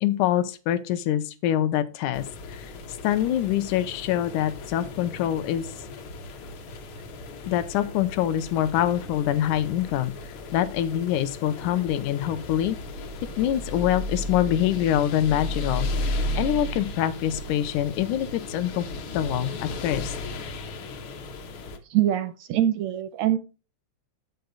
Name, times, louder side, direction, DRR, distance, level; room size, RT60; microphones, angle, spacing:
voice 1, 0.0-2.7 3.0-5.7 7.5-10.1 10.5-12.8 13.4-15.9 16.4-18.9 19.1-20.1, left 11 dB, 90° left, 11 dB, 2.1 m, -25 dB
sound 1, 2.1-21.8, left 1 dB, 70° left, 1.2 m, -35 dB
voice 2, 21.9-23.4, right 12 dB, 80° right, 11 dB, 1.6 m, -23 dB
7.9 x 6.9 x 3.8 m, 0.33 s
omnidirectional pair, 3.5 m